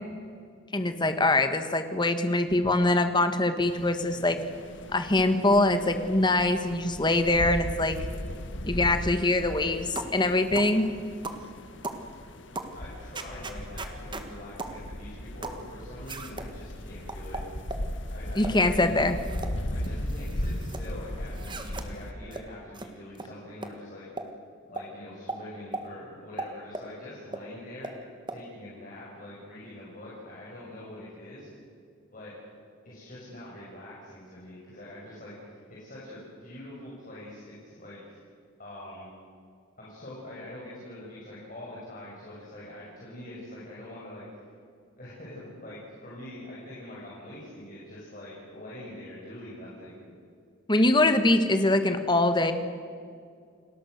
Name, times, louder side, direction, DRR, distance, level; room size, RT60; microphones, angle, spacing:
voice 1, 0.7-4.4 4.9-8.0 8.6-10.9 18.3-19.1 50.7-52.5, left 2 dB, 20° left, 8 dB, 1.5 m, -23 dB
sound 1, 3.6-22.1, left 1 dB, 60° left, 1.6 m, -37 dB
sound 2, 10.0-10.2 10.5-10.7 11.2-11.4 11.8-12.0 12.5-12.7 13.1-14.3 14.6-14.8 15.4-15.6 16.1-16.5 17.1-17.9 18.4-18.6 19.1-19.5 19.8-20.8 21.3-21.9 22.3-22.4 22.7-22.9 23.1-23.3 23.6-23.7 24.2-24.3 24.8-24.9 25.3-25.4 25.7-25.8 26.4-26.9 27.3-27.4 27.8-28.0 28.3-28.4, right 3 dB, 20° right, 1.7 m, -37 dB
voice 2, 12.7-17.4 18.1-19.1 19.7-24.1 24.7-27.9 28.3-31.5 32.1-32.3 32.8-38.0 38.6-39.1 39.8-44.4 45.0-50.0, left 1 dB, 40° left, -7 dB, 6.5 m, -44 dB
29.5 x 20.0 x 6.6 m, 2.3 s
head